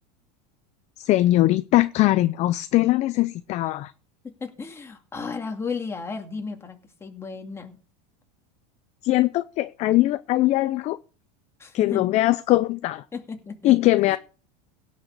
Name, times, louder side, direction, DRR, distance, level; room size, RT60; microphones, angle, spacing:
voice 1, 1.0-3.9 9.0-11.0 11.7-13.0 13.6-14.2, left 16 dB, 35° left, 0.6 m, -21 dB
voice 2, 4.2-7.8 11.6-12.2 13.1-14.2, left 5 dB, 10° left, 2.3 m, -34 dB
17.0 x 6.4 x 6.7 m
supercardioid pair, 150°, 20 cm